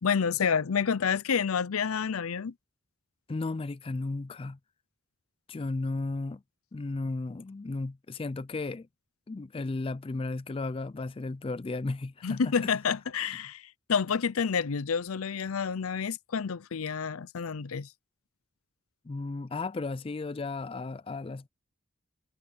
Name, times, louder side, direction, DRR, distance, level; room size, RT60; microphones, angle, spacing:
voice 1, 0.0-2.5 12.2-17.9, left 6 dB, 85° left, 0.6 m, -29 dB
voice 2, 3.3-4.6 5.5-6.4 6.7-8.9 9.3-12.7 19.1-21.5, left 3 dB, 25° left, 0.3 m, -34 dB
head